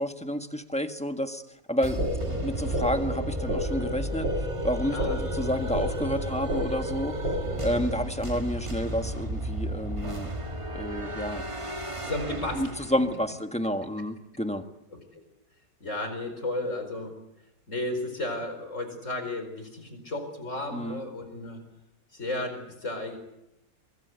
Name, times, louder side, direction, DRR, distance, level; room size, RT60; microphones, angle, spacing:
voice 1, 0.0-1.4 1.7-4.3 4.6-7.4 7.6-10.3 10.7-11.4 12.5-14.6 20.7-21.0, equal, 5° left, 7 dB, 1.4 m, -30 dB
sound 1, 1.8-13.2, right 1 dB, 20° right, 1.7 m, -34 dB
sound 2, 2.0-8.0, equal, 70° right, 3.0 m, -32 dB
voice 2, 4.9-5.3 7.5-7.6 7.9-8.1 12.0-12.8 15.1-15.2 15.8-17.1 17.7-21.6 22.1-23.2, left 2 dB, 40° left, 7 dB, 4.9 m, -33 dB
24.0 x 23.5 x 8.2 m, 0.86 s
omnidirectional pair, 1.9 m